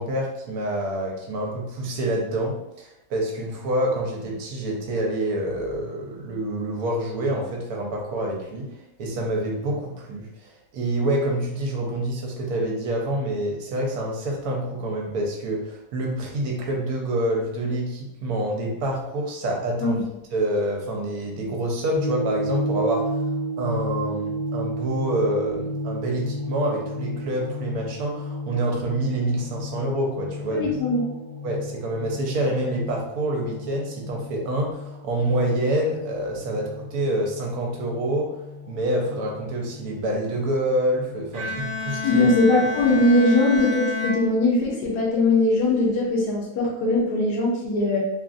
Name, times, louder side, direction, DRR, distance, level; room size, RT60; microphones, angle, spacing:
voice 1, 0.0-8.7 9.0-20.0 20.3-23.0 23.6-30.7 31.4-38.3 38.7-42.3, right 1 dB, 70° right, -1 dB, 1.1 m, -27 dB
sound 1, 21.9-41.4, equal, 50° left, 0.5 m, -33 dB
voice 2, 30.5-31.0 42.0-48.0, left 2 dB, 80° left, -4 dB, 1.2 m, -20 dB
Bowed string instrument, 41.3-45.1, left 3 dB, 25° right, 0.7 m, -31 dB
3.0 x 2.4 x 2.4 m, 0.87 s
omnidirectional pair, 1.7 m